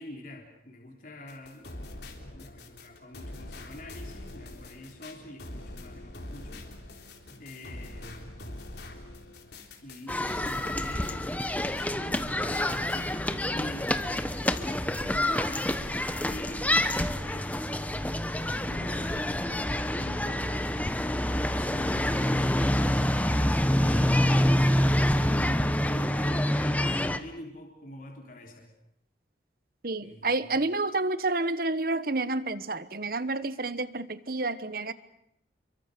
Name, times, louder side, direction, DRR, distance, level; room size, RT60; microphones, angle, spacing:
voice 1, 0.0-7.1 7.4-9.0 9.8-11.2 11.7-17.7 18.4-20.7 21.5-28.7 30.0-30.5, left 1 dB, 45° left, 0 dB, 3.7 m, -45 dB
sound 1, 1.3-12.3 12.5-13.1, left 1 dB, 65° left, 3.6 m, -44 dB
sound 2, 10.1-27.2, left 1 dB, 10° left, 1.0 m, -27 dB
voice 2, 29.8-34.9, right 2 dB, 50° right, 14 dB, 1.2 m, -29 dB
29.5 x 23.5 x 6.7 m, 0.74 s
head